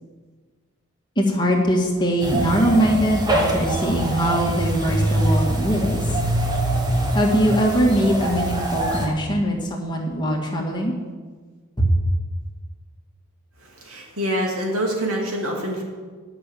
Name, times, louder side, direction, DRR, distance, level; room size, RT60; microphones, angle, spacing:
voice 1, 1.2-6.0 7.1-10.9 11.8-11.9, equal, 20° left, -2 dB, 1.9 m, -21 dB
sound 1, 2.2-9.1, right 1 dB, 20° right, 1.5 m, -23 dB
voice 2, 13.6-15.8, equal, 80° right, 0 dB, 2.7 m, -26 dB
10.5 x 6.3 x 8.5 m, 1.5 s
head